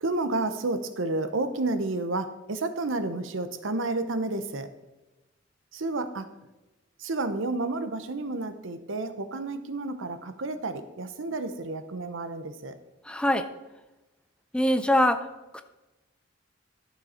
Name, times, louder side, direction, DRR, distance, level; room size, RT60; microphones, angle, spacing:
voice 1, 0.0-4.7 5.7-6.3 7.0-12.7, right 2 dB, 80° right, 11 dB, 0.8 m, -31 dB
voice 2, 13.1-13.5 14.5-15.3 15.5-15.6, left 1 dB, 5° left, 9 dB, 0.5 m, -23 dB
11.5 x 7.0 x 4.3 m, 1.1 s
head